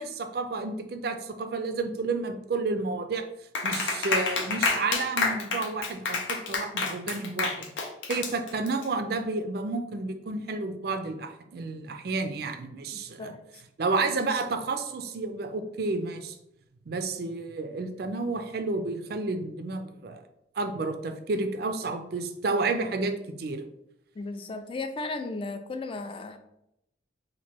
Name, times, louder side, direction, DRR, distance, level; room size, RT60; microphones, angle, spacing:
voice 1, 0.0-3.2 3.6-7.7 8.1-13.3 13.8-16.3 16.9-20.2 20.6-23.6, right 3 dB, 55° right, 7 dB, 0.4 m, -31 dB
Clapping, 3.5-8.8, left 4 dB, 85° left, 0.6 m, -29 dB
voice 2, 24.2-26.4, left 3 dB, 30° left, 7 dB, 0.3 m, -35 dB
3.0 x 2.6 x 4.3 m, 0.82 s
head